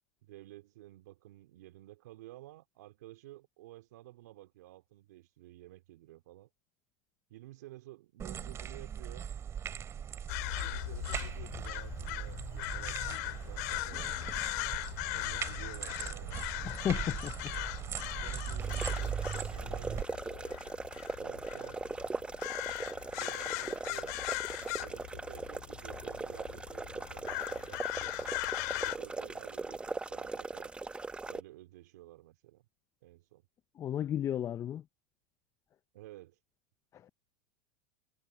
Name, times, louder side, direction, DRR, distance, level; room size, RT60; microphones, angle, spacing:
voice 1, 0.2-6.5 7.3-9.3 10.6-14.3 14.9-16.5 17.5-17.7 18.2-20.6 21.2-21.9 23.0-24.1 24.8-27.8 28.7-31.0 31.2-32.6 33.0-33.4 35.9-36.4, right 16 dB, 70° right, 3.1 m, -52 dB
sound 1, 8.2-20.0, right 8 dB, 30° right, 2.8 m, -39 dB
sound 2, 10.3-29.0, left 26 dB, 65° left, 2.5 m, -39 dB
voice 2, 16.6-17.5 33.7-34.8 36.9-37.1, left 10 dB, 30° left, 0.8 m, -34 dB
sound 3, 18.6-31.4, right 3 dB, 10° right, 1.1 m, -40 dB
hypercardioid pair, 100°, 9 cm